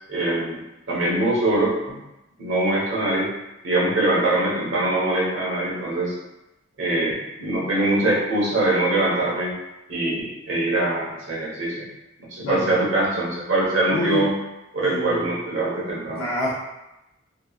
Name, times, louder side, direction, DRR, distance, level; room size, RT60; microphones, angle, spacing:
voice 1, 0.1-0.6 0.9-2.0 2.4-3.3 3.6-6.1 6.8-9.5 9.9-11.8 12.3-14.4 14.7-16.3, right 2 dB, 70° right, -6 dB, 1.0 m, -23 dB
voice 2, 13.9-14.3 14.8-15.2 16.2-16.5, left 1 dB, 80° left, -5 dB, 0.4 m, -26 dB
2.8 x 2.3 x 2.3 m, 0.95 s
head